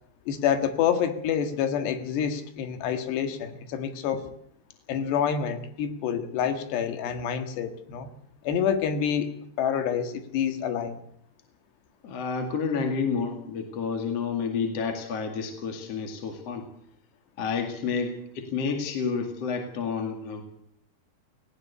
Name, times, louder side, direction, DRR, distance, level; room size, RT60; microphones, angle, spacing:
voice 1, 0.3-4.2 4.9-8.1 8.5-11.0, left 8 dB, 80° left, 9 dB, 3.8 m, -27 dB
voice 2, 12.0-16.7 17.4-20.4, left 5 dB, 45° left, 5 dB, 2.7 m, -30 dB
18.5 x 18.0 x 8.3 m, 0.70 s
omnidirectional pair, 4.8 m